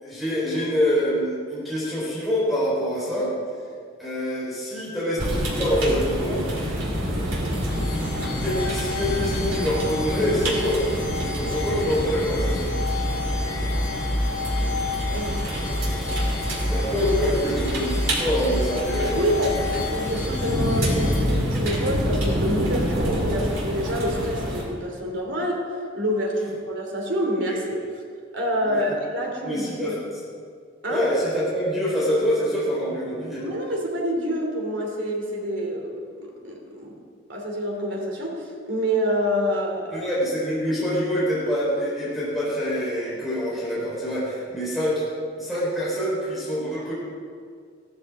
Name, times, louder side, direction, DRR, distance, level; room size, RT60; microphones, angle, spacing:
voice 1, 0.0-3.7 4.0-6.7 7.8-8.0 8.4-10.8 11.1-12.7 16.7-19.2 27.5-27.6 28.6-29.0 29.4-30.0 30.9-33.4 39.9-45.0 45.4-46.9, equal, ahead, -9 dB, 4.4 m, -25 dB
sound 1, 5.2-24.6, equal, 90° right, 3.5 m, -27 dB
sound 2, 7.5-21.2, left 2 dB, 65° left, 2.0 m, -29 dB
voice 2, 15.1-16.1 19.1-25.7 25.9-27.8 28.3-30.0 30.8-31.0 33.4-36.9 37.3-40.1, equal, 70° right, 0 dB, 2.9 m, -27 dB
16.5 x 13.5 x 3.7 m, 2.1 s
head